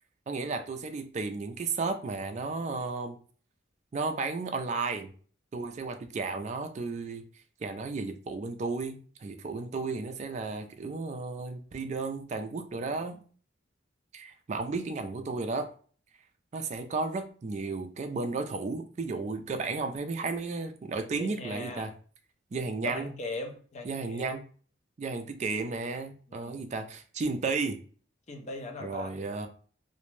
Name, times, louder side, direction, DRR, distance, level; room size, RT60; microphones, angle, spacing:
voice 1, 0.3-3.2 3.9-5.1 5.5-7.2 7.6-13.2 14.1-15.7 16.5-21.9 22.5-23.1 23.9-24.4 25.0-27.8 28.8-29.5, right 3 dB, 35° right, 0.3 m, -33 dB
voice 2, 21.2-21.9 22.8-24.3 26.3-26.7 28.3-29.2, left 2 dB, 35° left, 0.5 m, -40 dB
2.5 x 2.0 x 3.1 m
head